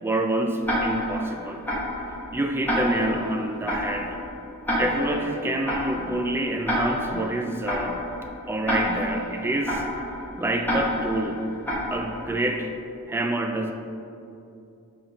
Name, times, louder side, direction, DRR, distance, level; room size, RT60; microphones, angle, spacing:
voice 1, 0.0-1.6 2.3-4.2 4.8-8.0 8.5-9.8 10.4-11.4 11.9-12.7 13.1-13.7, right 1 dB, 10° right, 4 dB, 0.3 m, -27 dB
Tick-tock, 0.6-12.5, equal, 10° left, 1.1 m, -29 dB
5.5 x 3.7 x 5.6 m, 2.7 s
head